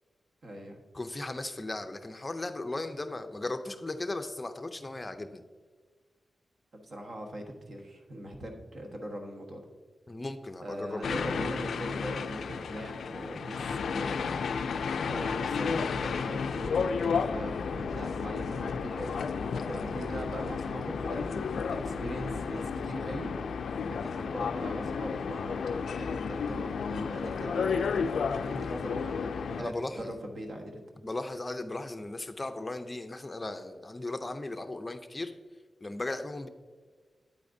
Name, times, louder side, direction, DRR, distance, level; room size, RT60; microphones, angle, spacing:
voice 1, 0.4-0.8 6.7-9.6 10.6-14.4 15.0-19.1 19.5-23.3 23.9-25.6 26.0-28.0 28.5-30.8, equal, 55° right, 2 dB, 1.4 m, -40 dB
voice 2, 0.9-5.4 10.1-11.0 29.6-30.1 31.0-35.3 35.8-36.5, left 2 dB, 20° left, 7 dB, 0.5 m, -37 dB
sound 1, 11.0-29.6, left 5 dB, 90° left, 0.3 m, -32 dB
sound 2, 15.5-23.8, equal, 30° right, 1.1 m, -48 dB
9.1 x 8.5 x 2.7 m, 1.5 s
wide cardioid pair, 115°, 0 cm